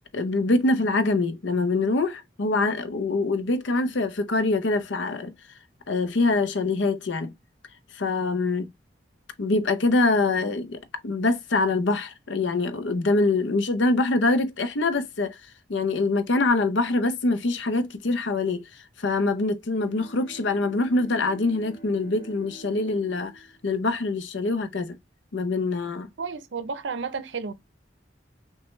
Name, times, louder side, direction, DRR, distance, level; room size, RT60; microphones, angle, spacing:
voice 1, 0.1-5.3 5.9-7.3 7.9-8.7 9.4-15.4 15.7-18.6 19.0-25.0 25.3-26.1, left 3 dB, 75° left, 0.6 m, -24 dB
Bowed string instrument, 19.7-24.7, right 2 dB, 50° left, 1.8 m, -48 dB
voice 2, 26.2-27.5, right 5 dB, 75° right, 0.6 m, -32 dB
6.1 x 2.2 x 3.1 m
head